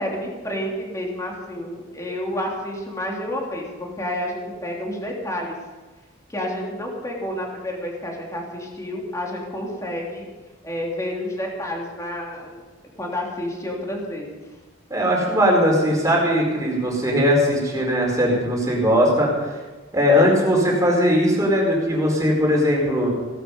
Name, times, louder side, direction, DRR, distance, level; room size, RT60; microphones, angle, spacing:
voice 1, 0.0-5.6 6.3-10.3 10.6-12.6 13.0-14.3, left 1 dB, 15° left, -1 dB, 3.2 m, -29 dB
voice 2, 14.9-19.6 19.9-23.1, equal, 15° right, -2 dB, 4.6 m, -19 dB
17.5 x 12.5 x 5.5 m, 1.3 s
head